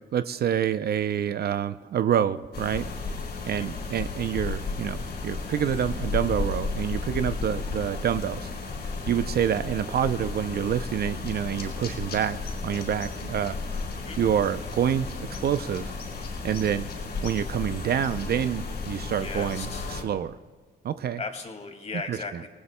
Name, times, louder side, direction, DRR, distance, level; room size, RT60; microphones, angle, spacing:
voice 1, 0.1-2.9 3.5-8.5 9.1-12.4 12.6-13.6 14.2-15.9 16.4-16.9 17.2-20.4 20.8-21.2 22.1-22.2, right 9 dB, 55° right, 12 dB, 0.5 m, -27 dB
sound 1, 2.5-20.0, left 4 dB, 55° left, 4.3 m, -34 dB
voice 2, 19.2-19.9 21.2-22.5, left 4 dB, 35° left, 4 dB, 2.1 m, -37 dB
25.0 x 18.5 x 2.2 m, 1.4 s
cardioid pair, 90°, 20 cm